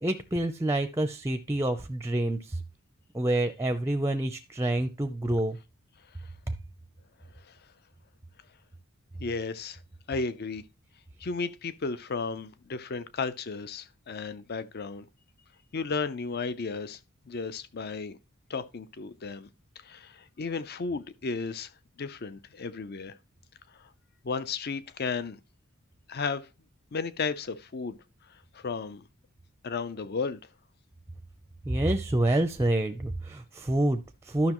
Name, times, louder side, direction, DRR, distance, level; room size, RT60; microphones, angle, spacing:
voice 1, 0.0-2.6 3.1-5.6 6.5-6.6 31.7-34.5, right 1 dB, 10° right, 0.5 m, -27 dB
voice 2, 9.2-9.8 10.1-10.6 11.2-15.0 15.7-17.0 17.3-18.2 18.5-19.5 19.8-21.7 22.0-23.1 23.8-23.9 24.2-25.4 26.1-26.5 26.9-28.0 28.5-29.0 29.6-30.4, left 4 dB, 45° left, 0.6 m, -34 dB
12.0 x 6.1 x 3.0 m
head